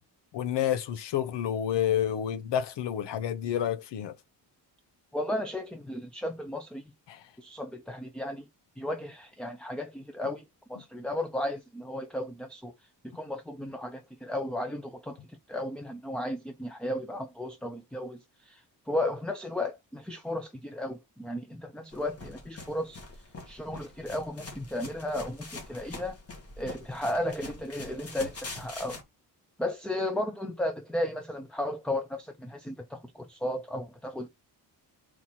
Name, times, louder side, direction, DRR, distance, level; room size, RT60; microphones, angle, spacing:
voice 1, 0.3-4.1 7.1-7.2, left 10 dB, 85° left, 0.9 m, -29 dB
voice 2, 5.1-6.8 7.4-8.5 8.8-10.4 10.7-12.7 13.0-15.2 15.5-26.2 26.6-29.0 29.6-34.3, left 1 dB, ahead, 0.6 m, -34 dB
sound 1, 21.9-29.0, left 3 dB, 35° left, 2.1 m, -44 dB
4.5 x 4.3 x 5.8 m
wide cardioid pair, 165°, 41 cm